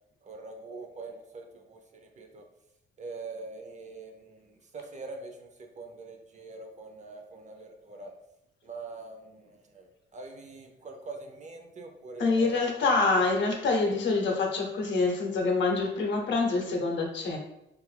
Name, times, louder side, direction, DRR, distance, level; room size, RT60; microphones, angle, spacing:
voice 1, 0.2-2.5 3.0-8.1 8.6-12.7, right 3 dB, 35° right, 3 dB, 0.5 m, -43 dB
voice 2, 12.2-17.4, left 3 dB, 65° left, 2 dB, 0.7 m, -26 dB
2.6 x 2.5 x 3.2 m, 0.87 s
cardioid pair, 90°, 20 cm